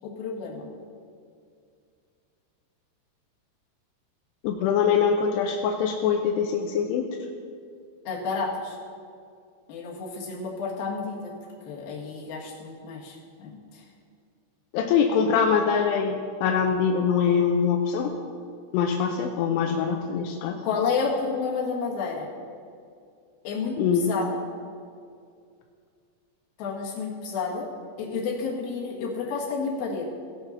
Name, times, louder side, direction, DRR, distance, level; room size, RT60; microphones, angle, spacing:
voice 1, 0.0-0.7 8.0-8.8 9.7-11.3 11.7-13.8 20.6-22.3 23.4-23.8 24.1-24.4 26.6-27.7 28.0-30.1, left 5 dB, 60° left, -4 dB, 3.1 m, -30 dB
voice 2, 4.4-7.1 14.7-18.1 18.7-20.6 23.8-24.1, left 6 dB, 85° left, 2 dB, 2.5 m, -23 dB
17.0 x 5.7 x 5.6 m, 2.3 s
omnidirectional pair, 5.4 m